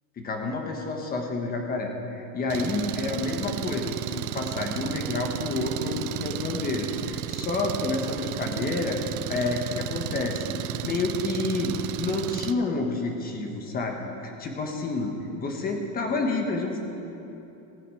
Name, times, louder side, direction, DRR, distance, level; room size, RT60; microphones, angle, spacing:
voice 1, 0.2-9.0 9.3-10.5 10.8-14.0 14.2-16.8, left 3 dB, 20° left, 3 dB, 1.4 m, -29 dB
Engine, 2.5-12.5, right 14 dB, 85° right, 0.6 m, -33 dB
18.5 x 8.5 x 5.0 m, 2.9 s
supercardioid pair, 150°, 45 cm